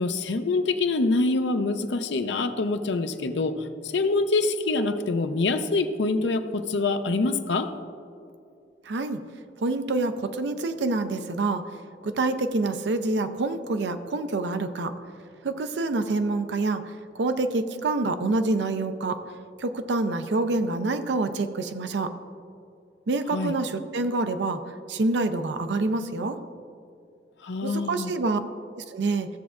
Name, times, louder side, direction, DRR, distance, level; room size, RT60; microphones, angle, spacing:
voice 1, 0.0-7.7 23.3-23.6 27.4-28.1, left 3 dB, 90° left, 9 dB, 0.6 m, -25 dB
voice 2, 8.8-9.2 9.6-11.6 12.0-14.9 15.4-19.2 19.6-22.1 23.1-24.6 24.9-26.4 27.6-28.4 28.7-29.3, right 2 dB, 80° right, 8 dB, 0.5 m, -27 dB
15.5 x 7.0 x 2.5 m, 2.5 s
head